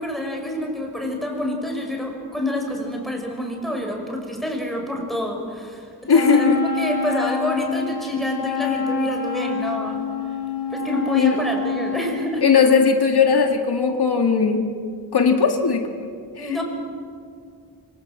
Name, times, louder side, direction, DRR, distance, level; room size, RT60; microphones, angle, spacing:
voice 1, 0.0-10.0 10.7-12.4 16.3-16.6, left 1 dB, ahead, 1 dB, 6.0 m, -27 dB
voice 2, 6.1-6.6 11.1-11.4 12.4-14.6 15.1-16.1 16.4-16.5, left 5 dB, 85° left, 4 dB, 2.0 m, -18 dB
Wind instrument woodwind instrument, 6.1-12.3, left 5 dB, 65° left, 3.8 m, -27 dB
26.0 x 25.5 x 7.7 m, 2.2 s
wide cardioid pair, 110°, 38 cm